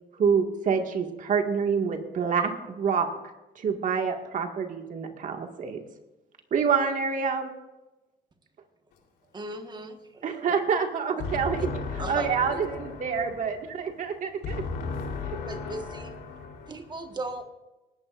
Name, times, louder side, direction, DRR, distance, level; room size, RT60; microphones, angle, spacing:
voice 1, 0.2-3.1 3.6-5.8 6.5-7.5 10.2-11.7 12.1-14.4, right 6 dB, 50° right, 4 dB, 2.0 m, -27 dB
voice 2, 9.3-10.2 12.0-12.6 15.5-16.1 16.7-17.4, right 2 dB, 25° right, 6 dB, 1.5 m, -37 dB
voice 3, 11.2-17.2, left 4 dB, 75° left, 1 dB, 3.6 m, -36 dB
19.0 x 15.0 x 2.6 m, 1.0 s
cardioid pair, 110°, 17 cm